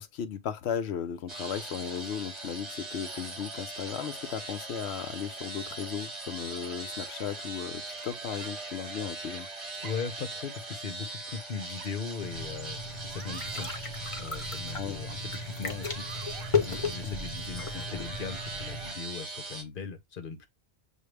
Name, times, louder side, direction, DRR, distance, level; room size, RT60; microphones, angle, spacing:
voice 1, 0.0-9.5 14.7-15.0 17.0-17.1, left 8 dB, 80° left, 0.9 m, -36 dB
sound 1, 1.3-19.6, right 2 dB, 30° right, 1.0 m, -41 dB
sound 2, 7.9-8.5 9.4-10.0 11.1-11.9 12.9-13.8 15.5-16.5 17.7-19.0, right 8 dB, 75° right, 0.8 m, -49 dB
voice 2, 9.8-12.8 13.1-13.7 14.2-16.1 16.4-20.5, left 6 dB, 55° left, 1.0 m, -39 dB
sound 3, 12.2-18.9, left 4 dB, 35° left, 0.8 m, -35 dB
6.5 x 2.2 x 3.2 m
omnidirectional pair, 1.1 m